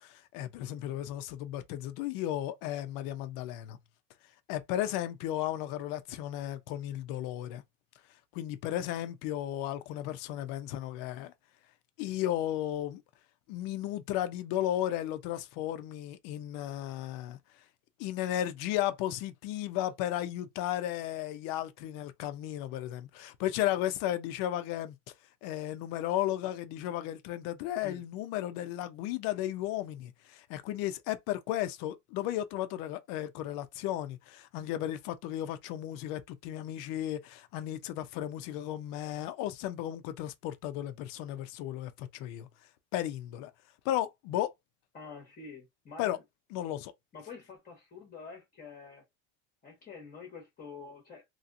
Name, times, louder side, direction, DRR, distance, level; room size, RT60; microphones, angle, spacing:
voice 1, 0.0-3.8 4.5-7.6 8.3-11.3 12.0-13.0 13.5-17.4 18.0-24.9 25.4-42.5 42.9-43.5 43.8-44.5 46.0-46.2 46.5-46.9, left 13 dB, 60° left, 0.6 m, -34 dB
voice 2, 44.9-46.2 47.1-49.0 49.6-51.2, left 5 dB, 25° left, 1.0 m, -47 dB
3.0 x 2.8 x 2.5 m
cardioid pair, 165°, 37 cm